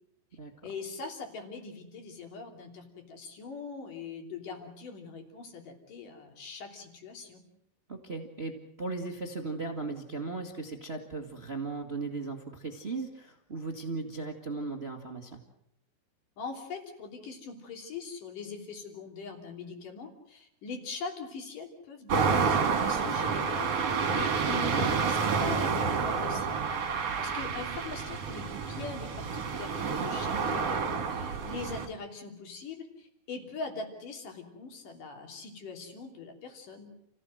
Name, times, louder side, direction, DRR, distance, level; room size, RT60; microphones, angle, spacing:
voice 1, 0.6-7.4 16.4-26.6 27.2-36.9, left 4 dB, 60° left, 4 dB, 4.6 m, -42 dB
voice 2, 7.9-8.5 8.8-15.4 31.2-31.5, right 3 dB, 70° right, 4 dB, 0.5 m, -37 dB
sound 1, 22.1-31.9, right 5 dB, 45° right, 2.7 m, -29 dB
29.5 x 16.0 x 7.8 m, 0.76 s
omnidirectional pair, 4.5 m